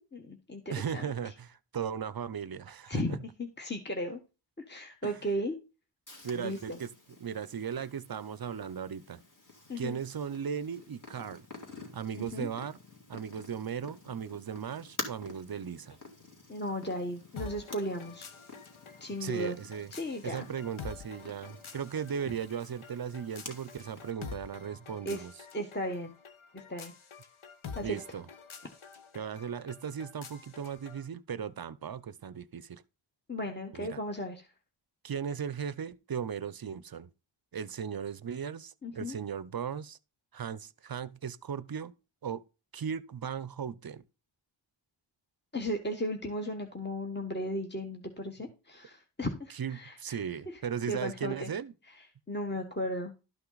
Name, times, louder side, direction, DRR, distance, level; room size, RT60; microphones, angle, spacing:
voice 1, 0.1-0.6 0.9-1.0 2.9-4.2 4.7-5.5 6.3-6.8 9.7-10.0 12.2-12.5 16.5-18.3 19.0-19.6 19.9-20.5 25.0-25.3 25.5-26.1 26.5-26.9 27.7-28.0 33.3-34.5 38.8-39.2 45.5-50.2 50.9-51.5 52.3-53.1, equal, 20° left, 1.2 m, -35 dB
voice 2, 0.7-3.2 5.0-5.2 6.2-6.9 7.2-9.2 9.8-11.5 11.9-12.8 13.1-16.0 19.2-19.9 20.2-25.3 27.8-28.3 29.1-32.8 33.7-34.0 35.0-37.1 37.5-40.0 40.3-41.9 42.2-42.4 42.7-44.0 49.5-51.7, right 7 dB, 45° right, 0.6 m, -37 dB
Purr, 6.1-24.1, left 2 dB, 40° left, 2.7 m, -49 dB
sound 1, 17.4-31.1, left 5 dB, 75° left, 1.1 m, -48 dB
12.0 x 5.8 x 3.9 m
wide cardioid pair, 60°, 50 cm